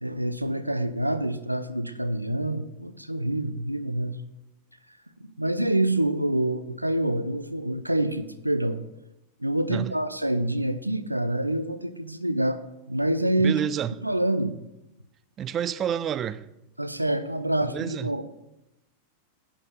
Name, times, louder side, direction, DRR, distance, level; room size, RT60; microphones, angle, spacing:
voice 1, 0.0-4.2 5.2-8.8 9.4-12.6 12.9-13.6 14.0-14.5 16.8-18.2, right 1 dB, 85° right, 0.5 m, -26 dB
voice 2, 13.4-13.9 15.4-16.5 17.6-18.2, right 9 dB, 30° right, 0.4 m, -29 dB
9.7 x 4.9 x 5.4 m
figure-of-eight pair, 90°, 0 cm